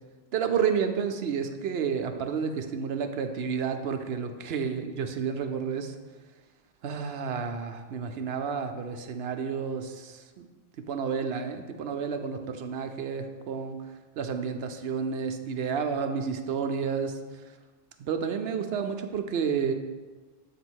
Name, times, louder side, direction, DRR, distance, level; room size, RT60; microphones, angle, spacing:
voice 1, 0.3-6.0 6.8-10.5 10.9-13.8 14.2-17.2 18.0-19.7, right 6 dB, 65° right, 6 dB, 0.7 m, -30 dB
8.2 x 3.0 x 6.2 m, 1.3 s
omnidirectional pair, 1.4 m